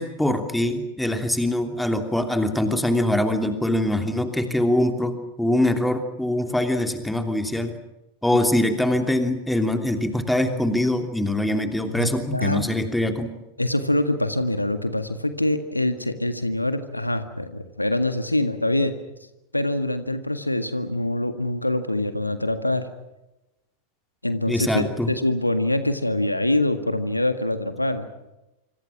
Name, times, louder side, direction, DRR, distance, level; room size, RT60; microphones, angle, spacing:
voice 1, 0.0-7.8 8.2-13.3 24.5-25.1, left 1 dB, 5° left, 6 dB, 3.0 m, -23 dB
voice 2, 12.0-12.7 13.6-18.9 19.5-22.9 24.2-28.1, left 1 dB, 85° left, 10 dB, 1.8 m, -24 dB
26.5 x 26.0 x 6.1 m, 0.96 s
figure-of-eight pair, 90°, 0 cm